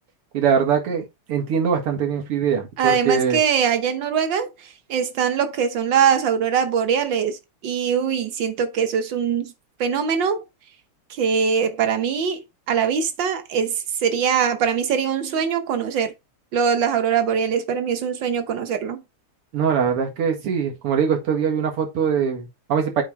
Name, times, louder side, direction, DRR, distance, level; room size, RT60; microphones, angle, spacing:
voice 1, 0.3-3.4 19.5-23.0, right 7 dB, 90° right, 2.7 m, -22 dB
voice 2, 2.8-9.5 9.8-10.4 11.1-16.1 16.5-19.0, right 7 dB, 60° right, 1.5 m, -22 dB
8.1 x 3.7 x 4.4 m
omnidirectional pair, 2.4 m